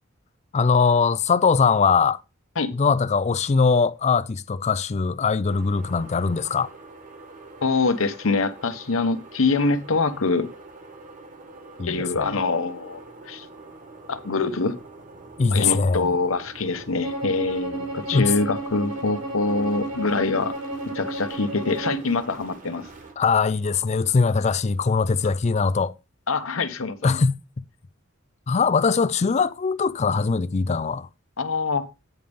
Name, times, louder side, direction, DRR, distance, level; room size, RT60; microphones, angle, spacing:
voice 1, 0.5-2.2 2.7-6.7 11.8-12.4 15.4-16.1 18.1-18.3 23.2-25.9 27.0-27.4 28.5-31.1, left 5 dB, 35° left, 0.4 m, -21 dB
sound 1, 5.5-23.1, right 3 dB, 40° right, 1.6 m, -45 dB
voice 2, 7.6-10.5 11.9-13.0 13.3-13.5 14.1-14.8 15.5-20.5 20.9-22.9 26.3-27.2 31.4-31.8, left 3 dB, 85° left, 1.0 m, -24 dB
Bowed string instrument, 17.0-22.1, right 1 dB, 80° right, 4.7 m, -32 dB
9.3 x 3.5 x 6.7 m
head